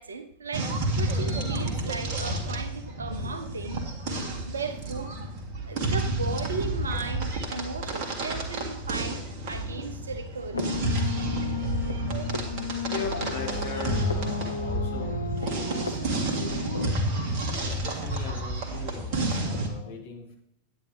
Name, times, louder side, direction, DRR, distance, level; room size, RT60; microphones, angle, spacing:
voice 1, 0.0-3.8 4.5-5.2 5.6-10.7, right 4 dB, 70° right, 8 dB, 0.9 m, -36 dB
sound 1, 0.5-19.7, right 1 dB, 45° right, 1.7 m, -30 dB
sound 2, 10.5-16.9, left 4 dB, 80° left, 0.7 m, -34 dB
voice 2, 12.3-15.1 15.5-17.0 17.6-20.3, left 5 dB, 60° left, 0 dB, 2.3 m, -40 dB
10.0 x 9.2 x 3.3 m, 0.75 s
figure-of-eight pair, 90°, 0 cm